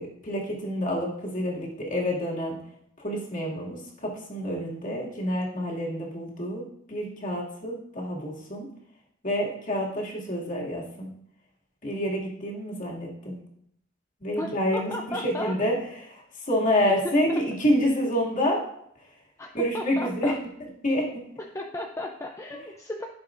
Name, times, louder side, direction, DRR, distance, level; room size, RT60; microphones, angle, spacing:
voice 1, 0.0-2.6 3.0-6.6 6.9-8.7 9.2-11.1 11.8-13.4 14.2-15.7 16.0-16.2 16.5-18.6 19.5-20.3 20.8-21.0, equal, 40° left, -3 dB, 2.4 m, -28 dB
voice 2, 14.4-15.5 17.0-17.4 19.4-19.5 19.7-20.4 21.4-23.1, left 1 dB, 15° left, 1 dB, 0.6 m, -35 dB
14.0 x 6.9 x 2.6 m, 0.73 s
head